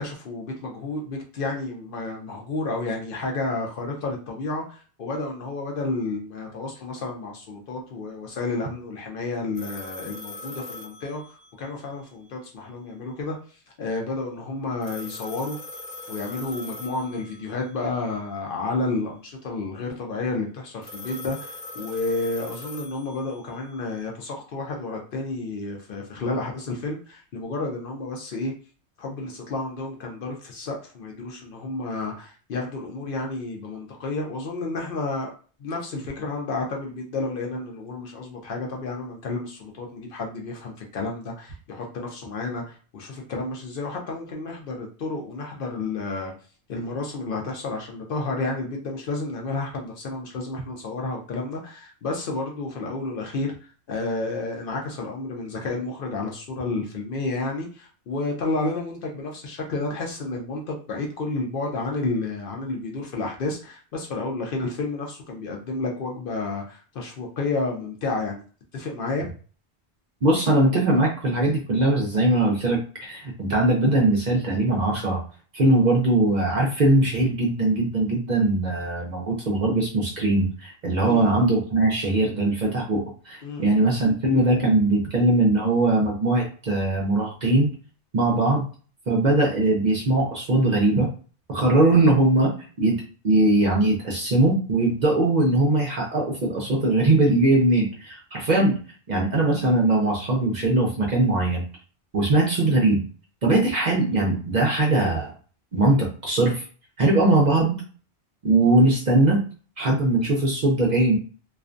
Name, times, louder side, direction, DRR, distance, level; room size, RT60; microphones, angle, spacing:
voice 1, 0.0-13.4 13.8-15.6 16.1-28.5 29.0-35.3 35.6-46.3 46.7-53.5 53.9-68.4 68.7-69.3 81.0-81.3 83.4-83.6, left 3 dB, 60° left, 0 dB, 0.7 m, -31 dB
sound 1, 9.6-11.9 14.8-17.7 20.8-23.8, left 2 dB, 15° left, 0.5 m, -40 dB
voice 2, 70.2-75.2 75.5-87.7 88.1-88.7 89.1-91.1 91.5-92.5 92.8-98.8 99.1-101.6 102.1-103.0 103.4-105.3 105.7-106.6 107.0-107.8 108.4-109.4 109.8-111.2, right 2 dB, 50° right, -1 dB, 0.6 m, -21 dB
2.4 x 2.2 x 2.4 m, 0.40 s
omnidirectional pair, 1.1 m